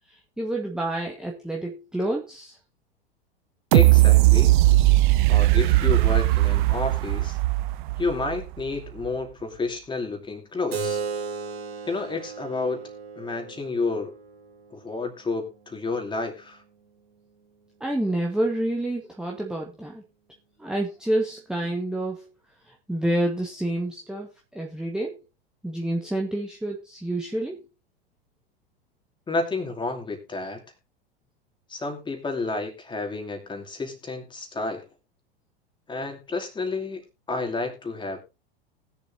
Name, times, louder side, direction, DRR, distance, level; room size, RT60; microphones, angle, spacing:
voice 1, 0.4-2.6 17.8-20.0 20.6-22.3 22.7-25.2 25.6-27.6, right 1 dB, ahead, 0 dB, 1.4 m, -28 dB
voice 2, 3.7-4.5 5.3-7.4 8.0-11.0 11.9-12.8 13.2-14.1 14.7-16.6 29.3-30.6 31.7-34.8 35.9-37.0 37.3-38.3, left 3 dB, 15° left, 3 dB, 2.7 m, -30 dB
sound 1, 3.7-8.6 9.0-9.1, right 18 dB, 55° right, 0.6 m, -18 dB
Keyboard (musical), 10.7-15.8, right 5 dB, 80° right, 1.9 m, -36 dB
19.5 x 7.1 x 2.7 m, 0.26 s
hypercardioid pair, 95°, 30 cm